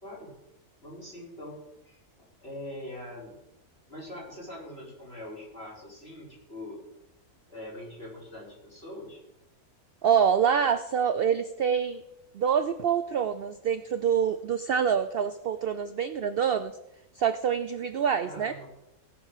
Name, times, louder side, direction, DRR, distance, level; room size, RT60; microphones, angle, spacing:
voice 1, 0.0-0.3 0.8-1.6 1.8-3.4 3.9-6.8 7.5-9.2 18.2-18.7, left 1 dB, 40° left, -5 dB, 5.3 m, -43 dB
voice 2, 10.0-12.0 12.3-16.7 17.1-18.5, right 7 dB, 65° right, 11 dB, 0.5 m, -26 dB
17.5 x 6.1 x 6.5 m, 0.88 s
omnidirectional pair, 1.6 m